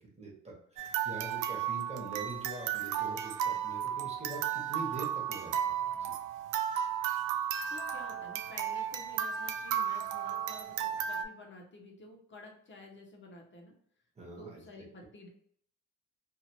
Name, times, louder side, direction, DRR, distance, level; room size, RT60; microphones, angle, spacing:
voice 1, 0.2-6.1 14.1-14.8, right 3 dB, 20° right, -2 dB, 1.3 m, -44 dB
sound 1, 0.8-11.2, right 9 dB, 85° right, 0.5 m, -34 dB
voice 2, 7.7-13.7 14.4-15.3, left 2 dB, 40° left, 0 dB, 1.1 m, -51 dB
2.8 x 2.7 x 2.9 m, 0.66 s
cardioid pair, 90°, 30 cm